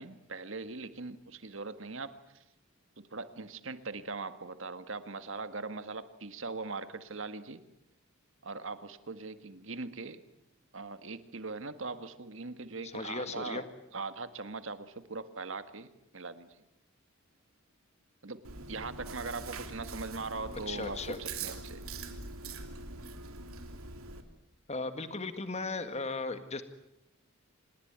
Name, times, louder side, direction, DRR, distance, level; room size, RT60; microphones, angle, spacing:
voice 1, 0.0-2.4 3.0-7.6 8.4-10.2 10.7-13.6 13.9-16.5 18.2-21.8, right 3 dB, 65° right, 11 dB, 1.7 m, -41 dB
voice 2, 12.8-13.6 20.7-21.2 24.7-26.6, left 3 dB, 30° left, 10 dB, 1.8 m, -36 dB
Chewing mastication, 18.4-24.2, right 3 dB, 90° right, 2.9 m, -43 dB
27.0 x 20.0 x 9.4 m, 0.85 s
head